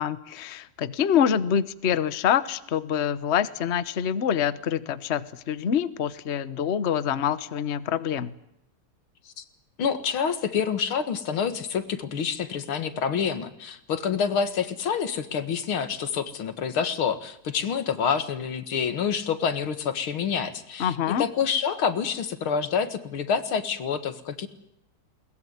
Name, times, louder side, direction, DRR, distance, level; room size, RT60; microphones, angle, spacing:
voice 1, 0.0-8.3 20.8-21.2, left 8 dB, 45° left, 16 dB, 1.0 m, -26 dB
voice 2, 9.8-24.5, left 7 dB, 85° left, 12 dB, 2.6 m, -27 dB
21.5 x 20.5 x 9.5 m, 0.80 s
omnidirectional pair, 2.2 m